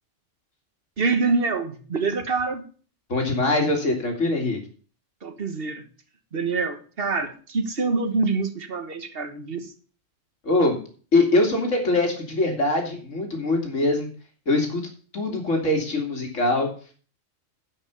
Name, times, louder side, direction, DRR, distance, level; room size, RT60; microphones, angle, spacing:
voice 1, 1.0-2.6 5.2-5.8 6.3-9.7, right 4 dB, 50° right, 8 dB, 1.5 m, -26 dB
voice 2, 3.1-4.6 10.4-10.8 11.1-14.1 14.5-14.8 15.1-16.7, left 2 dB, 75° left, 2 dB, 3.0 m, -22 dB
11.0 x 5.8 x 6.9 m, 0.41 s
omnidirectional pair, 1.3 m